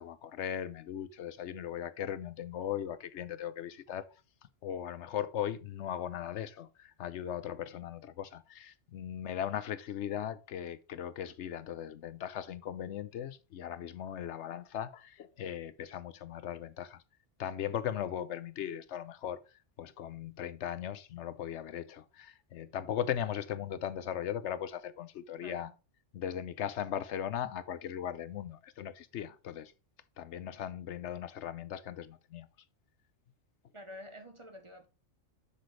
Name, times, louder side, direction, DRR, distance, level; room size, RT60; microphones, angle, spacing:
voice 1, 0.0-4.1 4.6-17.0 17.4-19.4 19.8-25.7 26.1-29.7 30.2-32.5, left 10 dB, 75° left, 0.9 m, -38 dB
voice 2, 25.4-25.7 33.7-34.9, left 1 dB, 25° right, 1.0 m, -48 dB
7.8 x 6.8 x 3.2 m
omnidirectional pair, 1.2 m